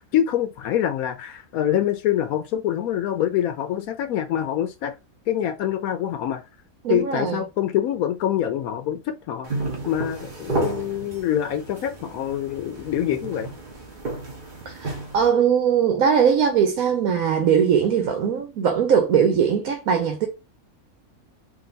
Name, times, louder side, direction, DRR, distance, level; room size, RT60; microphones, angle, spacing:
voice 1, 0.0-4.9 5.3-6.4 6.9-9.6 9.9-13.5, left 11 dB, 85° left, 1.0 m, -25 dB
voice 2, 6.8-7.4 14.7-20.3, right 7 dB, 80° right, 1.2 m, -20 dB
sound 1, 9.4-15.3, right 2 dB, 35° right, 1.1 m, -32 dB
3.8 x 2.6 x 3.8 m
omnidirectional pair, 1.5 m